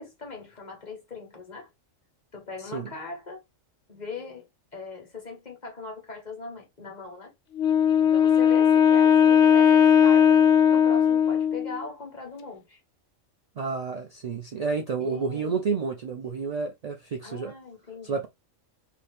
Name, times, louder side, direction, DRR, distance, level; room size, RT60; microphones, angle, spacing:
voice 1, 0.0-1.7 2.3-3.4 3.9-4.4 4.7-7.3 8.0-12.8 15.0-15.6 17.2-18.2, left 4 dB, 35° left, 1.1 m, -40 dB
Wind instrument woodwind instrument, 7.6-11.8, left 8 dB, 70° left, 0.9 m, -18 dB
voice 2, 13.6-17.5 18.0-18.3, right 5 dB, 80° right, 0.3 m, -30 dB
2.9 x 2.8 x 3.3 m
omnidirectional pair, 1.3 m